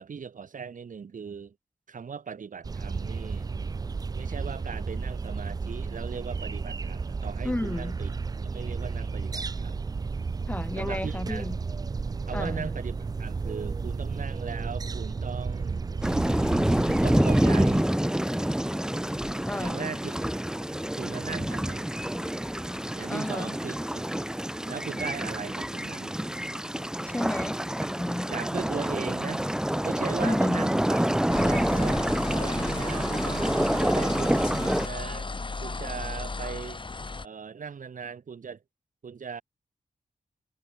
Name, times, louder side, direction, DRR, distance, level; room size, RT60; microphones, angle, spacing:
voice 1, 0.0-1.5 1.9-3.5 4.2-8.1 8.5-9.8 10.8-11.5 12.3-15.9 17.0-17.8 19.6-20.1 21.0-21.9 23.0-24.1 24.7-26.2 28.3-29.5 29.8-31.0 31.3-32.0 32.3-36.8 37.2-38.6 39.0-39.4, right 6 dB, 65° right, 2.1 m, -38 dB
sound 1, 2.6-17.8, right 4 dB, 25° right, 0.3 m, -33 dB
voice 2, 7.4-8.0 10.5-11.6 12.3-12.8 19.5-19.9 23.1-23.5 27.1-28.3 30.2-30.7, left 1 dB, 10° left, 0.7 m, -32 dB
sound 2, 16.0-34.9, right 1 dB, 5° right, 1.1 m, -27 dB
sound 3, 31.3-37.2, left 3 dB, 35° left, 3.1 m, -35 dB
wide cardioid pair, 100°, 15 cm